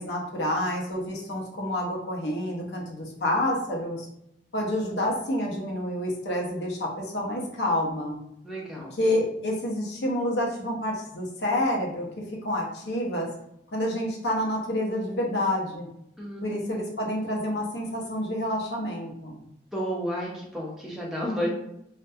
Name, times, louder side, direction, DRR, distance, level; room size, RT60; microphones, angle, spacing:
voice 1, 0.0-4.1 4.5-8.2 9.0-12.1 12.4-13.3 13.7-15.9 16.4-19.4, left 1 dB, 65° left, -1 dB, 0.6 m, -28 dB
voice 2, 8.4-8.9 16.2-16.4 19.7-21.5, equal, 5° right, -4 dB, 0.5 m, -31 dB
2.3 x 2.1 x 2.6 m, 0.77 s
head